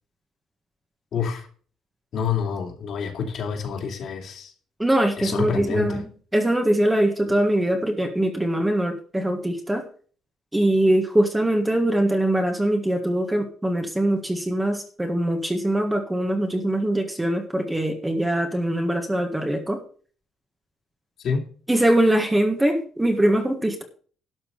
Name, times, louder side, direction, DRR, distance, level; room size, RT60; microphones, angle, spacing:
voice 1, 1.1-1.5 2.1-4.5 5.2-6.0 21.2-21.4, left 6 dB, 55° left, 2 dB, 2.9 m, -27 dB
voice 2, 4.8-6.0 6.3-9.9 10.5-19.8 21.7-23.8, right 1 dB, 10° right, 4 dB, 1.7 m, -22 dB
12.0 x 5.8 x 6.8 m, 0.42 s
cardioid pair, 145°, 0 cm